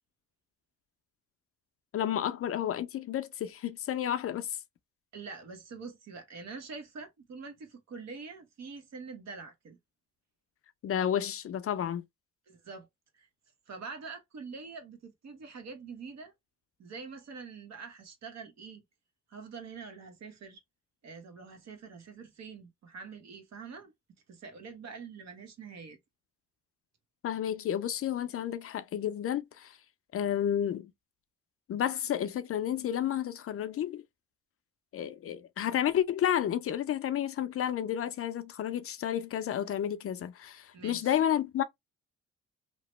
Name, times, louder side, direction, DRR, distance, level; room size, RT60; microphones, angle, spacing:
voice 1, 1.9-4.6 10.8-12.0 27.2-29.8 30.1-30.9 31.7-34.0 34.9-41.6, left 10 dB, 50° left, 0.4 m, -31 dB
voice 2, 5.1-9.8 12.5-12.9 13.1-13.3 13.7-16.3 16.8-18.8 19.3-20.6 21.0-23.9 24.3-26.0 40.7-41.2, right 5 dB, 60° right, 1.1 m, -45 dB
2.9 x 2.1 x 3.0 m
cardioid pair, 90°, 30 cm